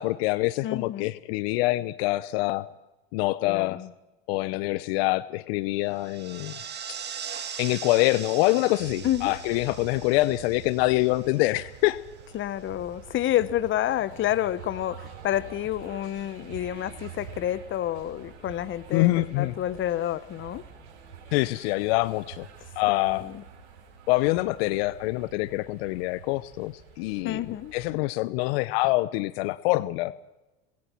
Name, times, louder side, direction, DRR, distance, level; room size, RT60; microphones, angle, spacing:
voice 1, 0.0-2.7 3.1-3.8 4.3-6.6 6.9-7.0 7.6-12.0 18.9-19.5 21.3-22.5 22.8-23.3 24.1-30.1, left 19 dB, 60° left, 16 dB, 0.8 m, -25 dB
voice 2, 0.6-1.1 3.5-3.9 9.0-9.4 12.3-19.1 19.4-20.6 22.9-23.4 27.2-27.7, left 12 dB, 35° left, 16 dB, 1.1 m, -29 dB
sound 1, 5.9-11.7, right 8 dB, 30° right, 2.1 m, -40 dB
sound 2, 8.8-27.9, right 6 dB, 80° right, 7.1 m, -46 dB
27.0 x 21.0 x 4.6 m, 1.0 s
hypercardioid pair, 95°, 34 cm